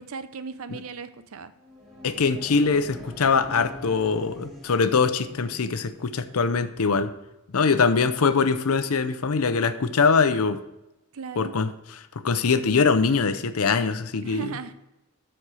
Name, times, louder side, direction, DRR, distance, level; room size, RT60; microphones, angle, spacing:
voice 1, 0.0-1.5 11.1-11.5 14.2-14.7, right 5 dB, 70° right, 12 dB, 0.6 m, -37 dB
sound 1, 1.5-6.2, left 1 dB, 20° right, 3.4 m, -43 dB
voice 2, 2.0-7.1 7.5-10.6 11.4-11.7 12.2-14.6, left 5 dB, 75° left, 11 dB, 0.6 m, -22 dB
12.5 x 4.4 x 4.7 m, 0.93 s
head